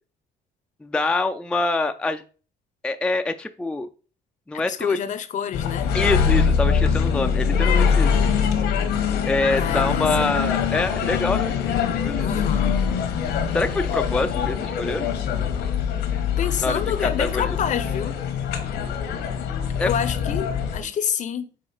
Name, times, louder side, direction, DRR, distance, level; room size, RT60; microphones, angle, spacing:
voice 1, 0.8-2.2 2.8-3.9 4.5-5.0 5.9-8.1 9.3-11.5 11.9-12.3 13.5-15.1 16.6-16.7 17.2-17.6 19.8-19.9, left 2 dB, 5° left, 0.4 m, -25 dB
voice 2, 4.5-5.9 9.6-10.4 12.2-12.8 16.4-18.2 19.8-21.5, left 8 dB, 45° left, 0.7 m, -28 dB
Binaural walk in Winchester, 5.5-20.8, left 7 dB, 80° left, 1.2 m, -23 dB
5.0 x 3.8 x 5.5 m
cardioid pair, 110°, 17 cm